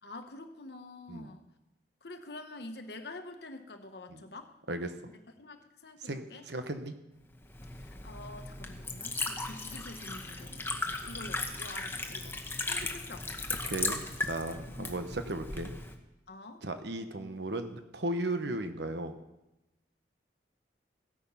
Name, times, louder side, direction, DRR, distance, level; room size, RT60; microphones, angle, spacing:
voice 1, 0.0-1.5 2.0-4.5 5.4-6.4 7.8-12.4 12.7-13.3 14.8-14.9 16.3-16.6, left 2 dB, 65° left, 7 dB, 1.1 m, -47 dB
voice 2, 6.0-6.9 10.9-11.0 13.6-15.7 16.6-19.1, right 2 dB, 70° right, 8 dB, 1.1 m, -36 dB
Liquid, 7.4-15.9, left 3 dB, 10° left, 1.0 m, -37 dB
15.5 x 8.8 x 5.7 m, 0.97 s
head